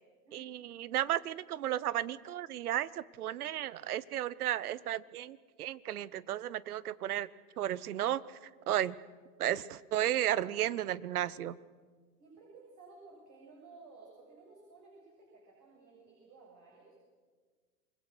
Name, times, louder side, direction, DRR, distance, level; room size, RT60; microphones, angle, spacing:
voice 1, 0.3-7.3 7.6-8.2 8.7-8.9 9.4-11.6, right 12 dB, 70° right, 20 dB, 0.9 m, -34 dB
voice 2, 12.2-17.0, right 3 dB, 35° right, -2 dB, 7.6 m, -56 dB
28.0 x 20.5 x 6.3 m, 1.5 s
hypercardioid pair, 105°, 46 cm